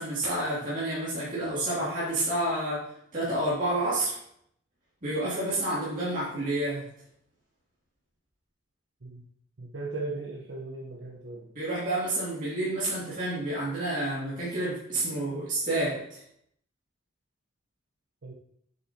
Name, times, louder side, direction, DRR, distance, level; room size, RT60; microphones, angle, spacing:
voice 1, 0.0-2.9 3.1-4.2 5.0-6.9 11.5-16.2, right 1 dB, 40° right, -9 dB, 2.5 m, -29 dB
voice 2, 9.6-11.5 18.2-18.3, right 3 dB, 75° right, -3 dB, 1.0 m, -37 dB
8.0 x 6.9 x 2.9 m, 0.70 s
head